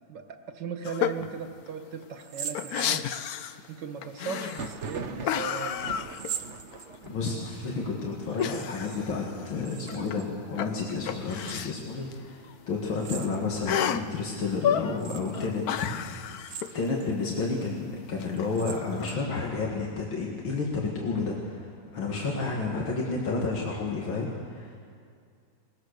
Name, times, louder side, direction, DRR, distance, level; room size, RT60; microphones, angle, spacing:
voice 1, 0.0-3.1 3.7-6.0, right 6 dB, 65° right, 6 dB, 2.0 m, -38 dB
sound 1, 0.8-1.3 1.7-1.8 2.0-3.7 4.0-4.8 5.2-6.7 7.1-7.2 8.4-10.2 10.5-11.7 12.1-12.2 12.4-12.5 13.7-14.1 14.5-15.0 15.3-16.7 18.2-19.1, left 9 dB, 65° left, 1.0 m, -31 dB
sound 2, 2.2-3.4 4.4-5.0 6.1-7.3 8.3-9.0 9.3-10.3 11.3-11.9 13.0-13.8 14.3-14.4 15.0-15.5 16.3-17.1 17.6-17.7 18.4-19.4, right 9 dB, 85° right, 1.7 m, -41 dB
Thunder, 4.4-13.9 14.2-14.9 15.1-16.1 16.5-18.2, right 4 dB, 50° right, 1.0 m, -45 dB
voice 2, 7.1-16.2 16.7-24.8, left 4 dB, 85° left, -2 dB, 2.7 m, -31 dB
22.5 x 20.0 x 6.7 m, 2.2 s
omnidirectional pair, 2.1 m